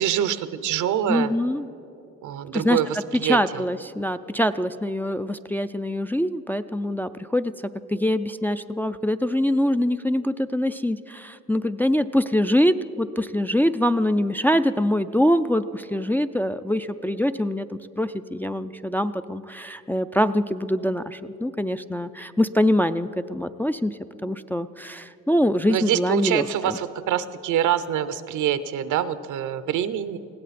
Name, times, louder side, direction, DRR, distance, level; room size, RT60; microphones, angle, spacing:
voice 1, 0.0-1.3 2.2-3.6 25.7-30.2, right 10 dB, 80° right, 13 dB, 0.7 m, -25 dB
voice 2, 1.1-1.7 2.5-2.8 3.2-7.5 7.9-26.8, left 1 dB, 5° left, 9 dB, 0.3 m, -24 dB
20.5 x 16.0 x 4.2 m, 2.8 s
cardioid pair, 90°, 30 cm